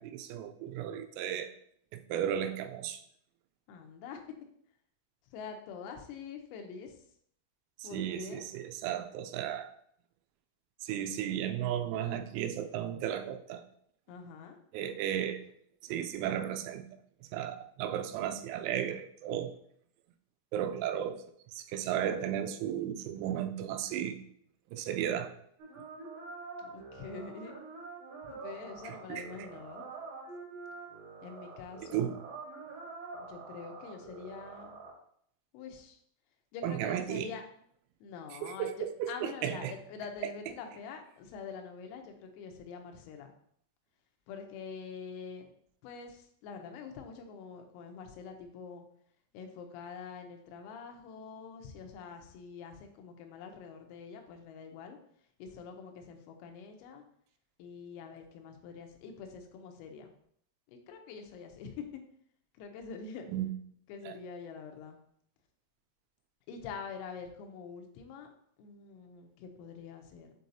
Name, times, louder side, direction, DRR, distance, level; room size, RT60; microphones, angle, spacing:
voice 1, 0.0-1.5 1.9-3.0 7.8-9.7 10.8-13.6 14.7-15.5 15.8-16.9 17.2-19.5 20.5-24.2 24.7-25.4 28.8-29.3 31.9-32.2 36.6-37.3 38.4-39.7 40.2-40.3 63.3-63.5 64.0-64.2, right 10 dB, 85° right, 7 dB, 3.3 m, -34 dB
voice 2, 3.7-4.2 5.3-7.0 7.8-8.4 14.1-14.6 26.6-27.5 28.2-29.9 31.2-32.1 33.3-34.7 35.5-36.0 36.5-37.4 38.0-43.3 44.3-45.5 45.8-48.8 49.3-55.0 55.4-57.0 57.6-60.1 60.7-61.9 62.6-63.3 63.9-65.0 66.5-68.3 68.6-70.3, left 6 dB, 85° left, 4 dB, 3.4 m, -45 dB
sound 1, 25.6-34.9, right 4 dB, 65° right, 3.1 m, -46 dB
7.9 x 4.7 x 2.7 m, 0.67 s
omnidirectional pair, 6.0 m